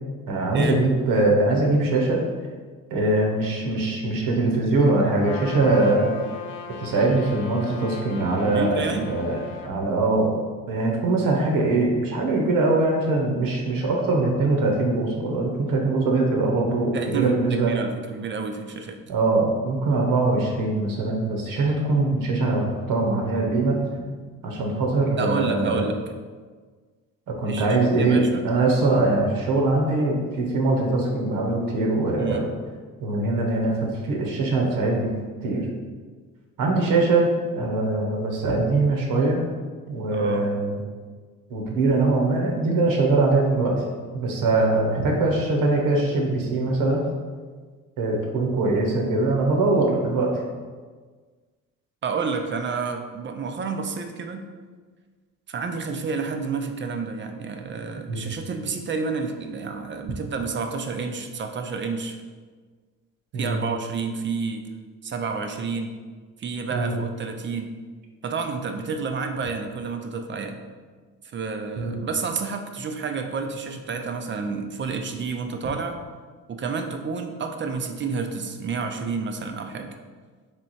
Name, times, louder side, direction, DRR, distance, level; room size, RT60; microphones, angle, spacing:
voice 1, 0.3-2.2 2.9-6.1 6.8-10.3 10.7-17.7 19.1-23.8 24.4-25.8 27.4-32.5 33.0-33.7 34.0-35.1 35.4-35.7 36.6-39.4 39.9-40.8 41.5-43.7 44.1-47.1 48.0-50.3 58.1-58.2 63.3-63.6 66.7-66.9 71.8-72.0, right 2 dB, 75° right, 0 dB, 0.9 m, -22 dB
Trumpet, 5.2-9.7, left 5 dB, 90° left, 0.5 m, -38 dB
voice 2, 8.4-9.1 16.9-19.0 25.2-26.0 27.5-28.4 32.2-32.5 40.1-40.5 52.0-54.4 55.5-62.2 63.3-64.6 65.0-65.9 66.4-67.7 68.2-70.6 71.3-76.0 76.5-79.9, right 5 dB, 35° right, 6 dB, 0.4 m, -30 dB
3.4 x 3.2 x 4.1 m, 1.5 s
cardioid pair, 95°, 34 cm